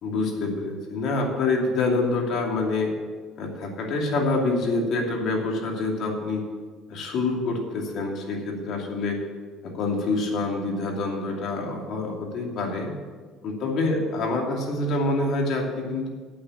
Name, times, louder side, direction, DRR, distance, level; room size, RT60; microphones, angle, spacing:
voice 1, 0.0-2.9 3.4-6.4 6.9-9.2 9.6-12.9 13.4-16.1, left 3 dB, 55° left, 1 dB, 2.7 m, -26 dB
9.4 x 8.5 x 8.5 m, 1.5 s
cardioid pair, 130°, 0 cm